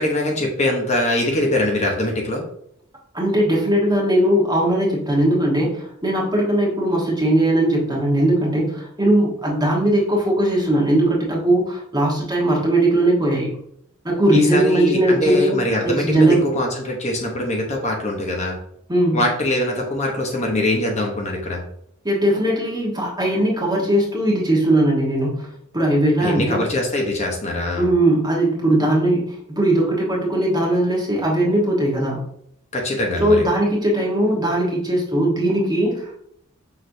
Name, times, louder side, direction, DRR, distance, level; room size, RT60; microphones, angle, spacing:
voice 1, 0.0-2.4 14.3-16.3 16.5-18.5 19.1-21.6 26.2-27.9 32.7-33.5, left 1 dB, 35° left, 0 dB, 0.8 m, -22 dB
voice 2, 3.1-13.5 14.0-16.4 18.9-19.2 22.0-26.6 27.8-32.2 33.2-36.3, right 1 dB, 20° right, -3 dB, 1.1 m, -19 dB
5.9 x 3.2 x 2.6 m, 0.70 s
head